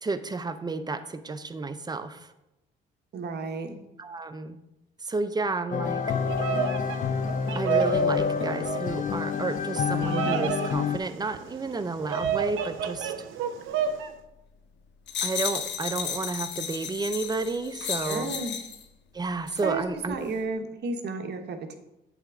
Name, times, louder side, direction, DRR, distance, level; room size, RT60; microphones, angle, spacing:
voice 1, 0.0-2.3 4.0-4.6 5.0-6.0 7.5-13.1 15.2-18.3 19.1-20.2, right 3 dB, 20° right, 10 dB, 0.6 m, -31 dB
voice 2, 3.1-3.8 17.9-18.5 19.6-21.8, right 3 dB, 55° right, 6 dB, 1.1 m, -32 dB
sound 1, 5.7-11.0, left 6 dB, 40° left, 0.5 m, -28 dB
Bird vocalization bird call bird song, 6.1-14.1, right 7 dB, 85° right, 0.6 m, -31 dB
sound 2, 15.1-18.8 19.5-19.7, left 8 dB, 65° left, 0.9 m, -33 dB
8.3 x 3.4 x 6.2 m, 0.91 s
cardioid pair, 90°, 20 cm